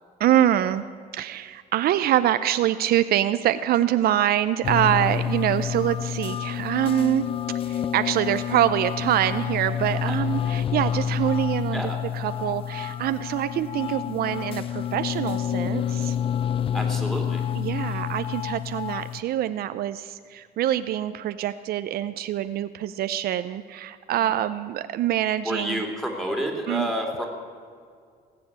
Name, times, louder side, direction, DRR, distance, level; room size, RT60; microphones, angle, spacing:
voice 1, 0.2-0.8 1.1-7.3 7.7-11.8 12.1-16.2 17.6-25.8 26.7-26.9, right 12 dB, 65° right, 12 dB, 0.6 m, -25 dB
sound 1, 4.6-19.2, left 9 dB, 35° left, 0.4 m, -28 dB
voice 2, 16.7-17.4 24.1-24.3 25.4-27.3, equal, ahead, 2 dB, 2.9 m, -29 dB
18.5 x 7.8 x 8.7 m, 2.1 s
cardioid pair, 110°, 17 cm